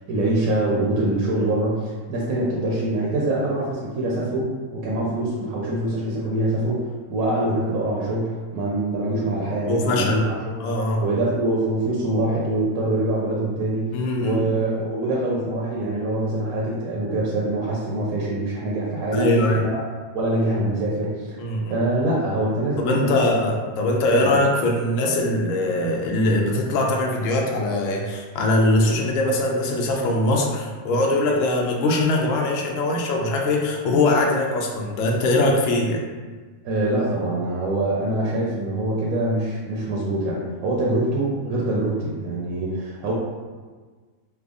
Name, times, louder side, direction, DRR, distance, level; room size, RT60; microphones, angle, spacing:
voice 1, 0.1-10.3 11.0-13.9 14.2-19.8 20.1-21.4 21.7-23.2 24.2-24.4 36.6-43.1, right 1 dB, 70° right, -4 dB, 1.0 m, -24 dB
voice 2, 9.7-10.3 10.6-11.0 13.9-14.4 19.1-19.6 21.4-21.7 22.8-36.0, left 2 dB, 65° left, 0 dB, 0.8 m, -21 dB
3.4 x 2.0 x 3.6 m, 1.4 s
omnidirectional pair, 1.6 m